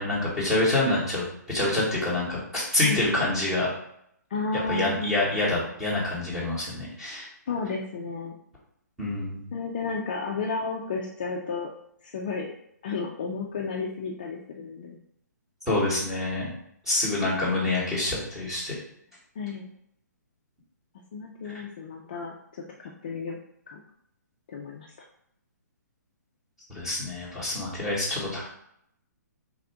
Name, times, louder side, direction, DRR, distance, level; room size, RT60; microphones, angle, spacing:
voice 1, 0.0-3.7 4.7-7.3 9.0-9.4 15.7-16.5 16.8-18.7 26.7-28.5, left 2 dB, 5° right, -8 dB, 1.0 m, -26 dB
voice 2, 4.3-5.1 7.5-8.3 9.5-11.7 12.0-12.5 12.8-15.0 19.4-19.7 21.1-23.4 23.7-23.8 24.5-24.9, left 4 dB, 30° left, -1 dB, 0.3 m, -32 dB
3.4 x 2.5 x 4.5 m, 0.73 s
hypercardioid pair, 170°, 10 cm